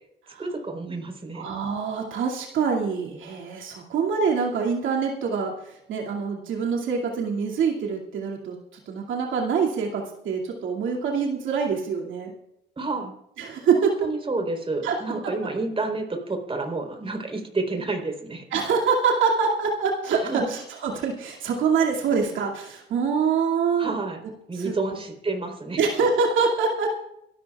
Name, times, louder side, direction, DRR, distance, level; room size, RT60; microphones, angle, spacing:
voice 1, 0.4-1.5 12.8-13.1 13.7-18.4 20.2-20.6 23.8-24.2 24.5-25.8, right 3 dB, 30° right, 4 dB, 3.8 m, -29 dB
voice 2, 1.3-8.6 8.9-12.3 13.4-13.9 14.8-14.9 18.5-23.9 24.5-24.8 25.8-26.9, right 5 dB, 80° right, -1 dB, 2.4 m, -25 dB
27.5 x 13.0 x 2.4 m, 0.82 s
cardioid pair, 90°, 20 cm